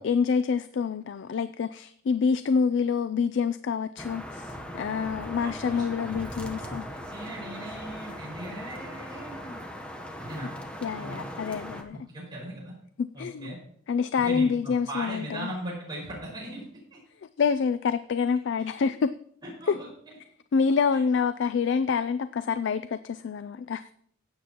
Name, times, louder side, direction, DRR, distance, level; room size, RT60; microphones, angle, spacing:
voice 1, 0.0-6.9 10.8-12.0 13.0-13.5 13.9-15.5 17.4-19.1 19.7-19.8 20.5-23.9, left 5 dB, 60° left, 13 dB, 0.3 m, -27 dB
sound 1, 4.0-11.8, equal, 5° left, 0.9 m, -39 dB
voice 2, 5.4-9.6 10.2-10.5 11.0-11.2 12.1-12.7 13.1-13.6 14.2-16.7 16.9-17.0 19.4-20.2 20.9-21.0, right 1 dB, 20° right, -5 dB, 5.5 m, -39 dB
16.0 x 8.6 x 2.9 m, 0.64 s
head